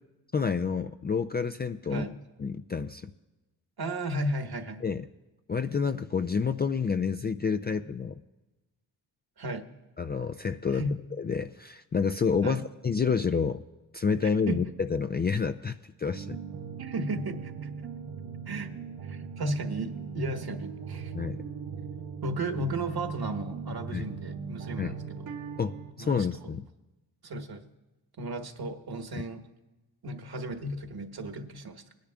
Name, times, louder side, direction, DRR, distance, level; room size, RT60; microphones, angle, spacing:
voice 1, 0.3-2.1 2.4-3.1 4.8-5.0 5.5-8.1 10.0-10.8 11.2-13.6 13.9-16.4 21.1-21.4 23.9-24.0 24.8-25.0 25.6-26.6, left 5 dB, 20° left, 8 dB, 0.4 m, -29 dB
voice 2, 3.8-4.9 9.4-9.6 10.7-11.0 12.4-12.6 14.5-14.6 16.8-17.5 18.5-18.7 19.0-21.1 22.2-25.3 26.0-26.5 27.2-27.6 28.2-29.5 30.0-31.8, right 1 dB, 50° right, 6 dB, 1.5 m, -34 dB
sound 1, 16.1-25.9, right 6 dB, 75° right, 1.8 m, -39 dB
22.5 x 10.5 x 2.4 m, 1.1 s
hypercardioid pair, 40°, 48 cm